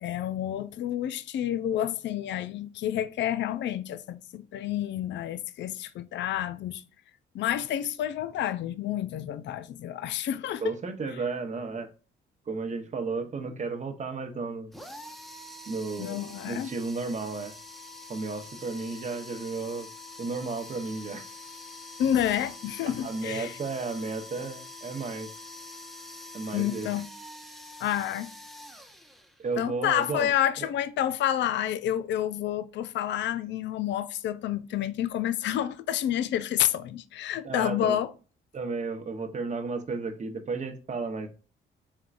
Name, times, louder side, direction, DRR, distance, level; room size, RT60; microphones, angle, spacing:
voice 1, 0.0-6.8 7.3-10.7 16.0-16.7 22.0-23.6 26.5-27.1 27.8-28.3 29.6-38.1, left 11 dB, 65° left, 0.4 m, -29 dB
voice 2, 10.6-11.9 12.5-14.7 15.7-16.2 16.5-17.5 18.1-19.9 20.2-21.3 23.0-25.3 26.3-26.9 29.4-30.3 30.6-30.7 37.4-38.0 38.5-41.3, right 4 dB, 35° right, 0.9 m, -33 dB
sound 1, 14.7-29.6, left 2 dB, ahead, 0.9 m, -45 dB
4.4 x 3.6 x 2.4 m
cardioid pair, 90°, 20 cm